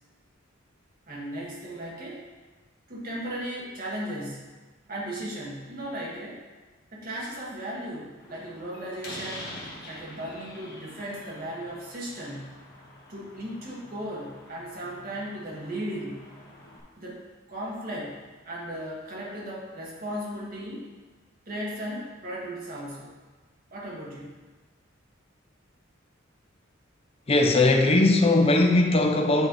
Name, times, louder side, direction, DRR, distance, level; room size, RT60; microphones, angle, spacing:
voice 1, 1.1-2.2 2.9-4.5 4.9-6.4 6.9-9.5 9.8-12.5 13.1-16.2 17.0-18.2 18.4-20.9 21.5-23.1 23.7-24.3, right 1 dB, 45° right, -5 dB, 1.7 m, -36 dB
Slam, 8.2-16.8, left 1 dB, 55° left, 1.3 m, -46 dB
voice 2, 27.3-29.5, left 2 dB, 30° left, 4 dB, 0.5 m, -20 dB
8.8 x 3.2 x 3.9 m, 1.3 s
head